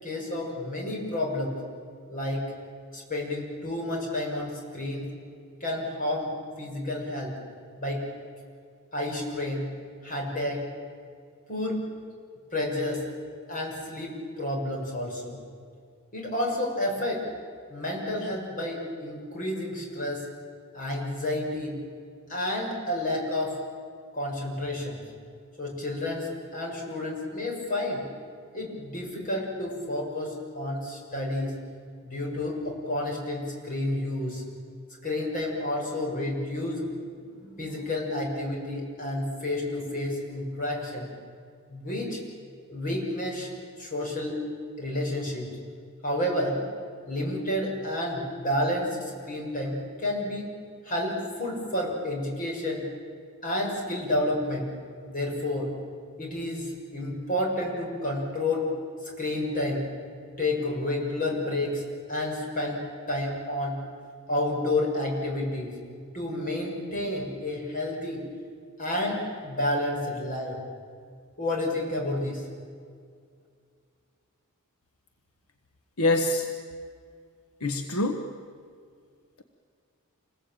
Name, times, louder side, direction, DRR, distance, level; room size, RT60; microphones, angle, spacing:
voice 1, 0.0-1.6 2.1-2.5 2.9-5.1 5.6-6.3 6.6-7.3 7.8-8.0 8.9-9.7 10.0-10.6 11.5-11.8 12.5-13.0 13.5-15.4 16.1-17.2 17.7-20.2 20.7-21.8 22.3-23.6 24.1-25.0 25.6-28.1 28.5-31.6 32.0-34.4 35.0-36.8 37.2-41.1 41.7-42.2 42.7-43.5 43.8-44.5 44.8-45.5 46.0-46.6 47.0-50.5 50.8-52.8 53.4-54.7 55.1-55.7 56.2-58.7 59.0-59.8 60.4-61.8 62.1-63.8 64.3-65.8 66.1-68.2 68.8-70.6 71.4-72.5, left 1 dB, 40° left, -1 dB, 6.7 m, -30 dB
voice 2, 76.0-76.5 77.6-78.3, left 2 dB, 75° left, 6 dB, 1.4 m, -25 dB
27.5 x 20.5 x 9.1 m, 2.2 s
head